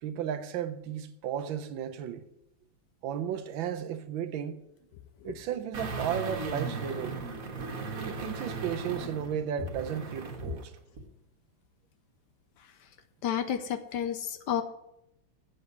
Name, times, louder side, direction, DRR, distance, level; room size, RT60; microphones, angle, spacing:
voice 1, 0.0-2.3 3.0-4.6 5.2-7.2 8.0-10.7, right 9 dB, 80° right, 1.5 m, -34 dB
sound 1, 5.7-10.6 11.0-11.1, right 3 dB, 45° right, 1.7 m, -36 dB
voice 2, 13.2-14.6, left 9 dB, 70° left, 1.2 m, -30 dB
7.7 x 6.6 x 8.2 m
omnidirectional pair, 2.2 m